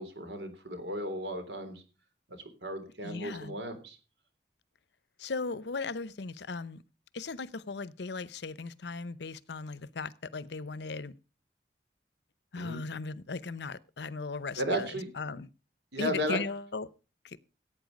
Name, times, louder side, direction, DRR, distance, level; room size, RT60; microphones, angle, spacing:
voice 1, 0.0-1.8 2.6-4.0 12.5-12.8 14.6-15.4 15.9-16.4, equal, 80° right, 3.4 m, -34 dB
voice 2, 3.0-3.6 5.2-6.8 7.1-11.1 12.5-14.9 15.2-15.5 16.0-16.9 17.2-17.4, left 4 dB, 75° left, 0.7 m, -37 dB
16.5 x 8.7 x 5.2 m
head